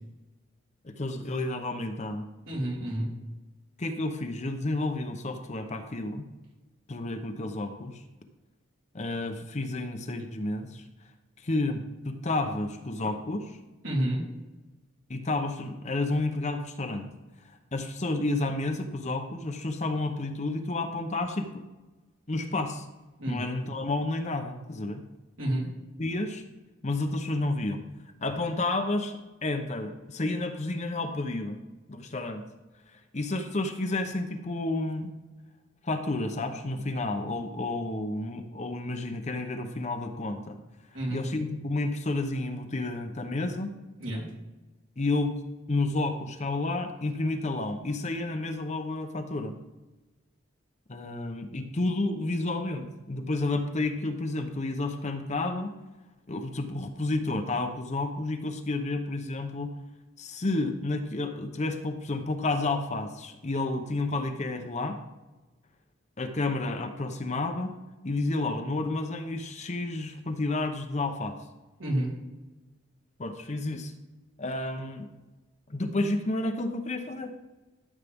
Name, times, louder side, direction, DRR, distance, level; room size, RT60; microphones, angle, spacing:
voice 1, 0.8-2.3 3.8-6.3 6.9-8.0 8.9-10.8 11.4-13.5 15.1-17.1 17.7-21.6 22.3-22.8 23.3-25.0 26.0-26.4 26.8-27.8 28.2-31.6 31.9-32.4 33.1-35.1 35.8-40.6 41.1-43.7 45.0-45.3 45.7-49.5 50.9-55.7 56.3-59.7 60.2-65.0 66.2-67.7 68.0-71.4 73.2-73.9 74.4-75.1 75.7-77.4, left 2 dB, 35° left, 6 dB, 0.8 m, -31 dB
voice 2, 2.5-3.1 13.8-14.2 23.2-23.4 25.4-25.7 40.9-41.2 44.0-44.3 71.8-72.1, right 1 dB, 75° right, -4 dB, 3.4 m, -29 dB
13.5 x 7.3 x 3.6 m, 1.1 s
head